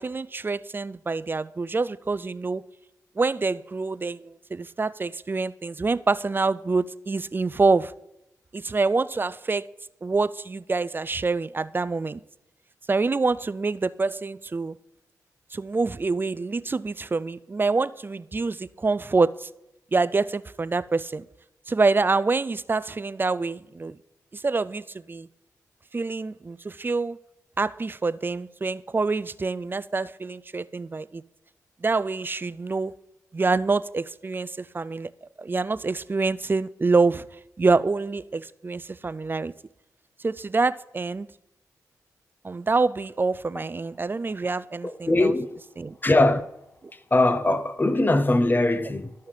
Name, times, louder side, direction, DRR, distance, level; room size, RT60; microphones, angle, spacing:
voice 1, 0.0-2.6 3.2-7.9 8.5-9.7 10.0-12.2 12.9-14.8 15.5-19.5 19.9-21.3 21.7-24.0 24.3-25.3 25.9-27.2 27.6-31.2 31.8-32.9 33.3-35.1 35.4-37.3 37.6-39.5 40.2-41.3 42.4-45.3 45.8-46.0, right 3 dB, 30° right, 0.4 m, -26 dB
voice 2, 45.1-45.6 46.0-46.5 47.1-49.1, left 2 dB, 30° left, 0.7 m, -21 dB
12.5 x 5.6 x 3.2 m
supercardioid pair, 40°, 7 cm